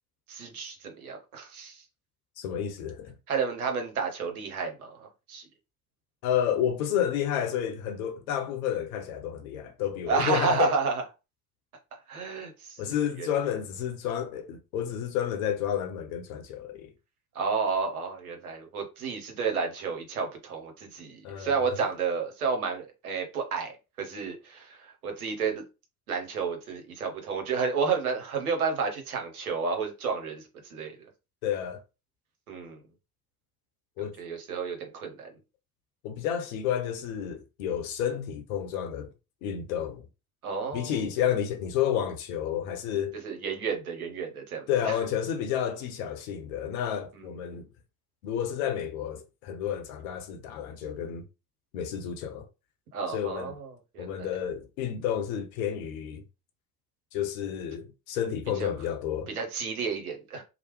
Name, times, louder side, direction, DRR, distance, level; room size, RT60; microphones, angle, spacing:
voice 1, 0.3-1.8 3.3-5.4 10.1-11.0 11.9-13.3 17.3-25.6 26.1-31.0 32.5-32.8 34.0-35.3 40.4-41.0 43.2-45.0 47.1-47.3 52.9-54.3 58.6-58.7 59.3-60.4, right 5 dB, 85° right, 0.7 m, -31 dB
voice 2, 2.4-3.1 6.2-10.7 12.8-16.9 21.2-21.8 31.4-31.8 34.0-34.1 36.0-39.1 39.4-40.1 40.7-43.2 44.7-47.7 48.2-51.2 51.7-52.5 53.1-53.5 54.0-56.2 57.1-59.3, left 9 dB, 70° left, 0.8 m, -30 dB
2.9 x 2.1 x 3.0 m
figure-of-eight pair, 50°, 42 cm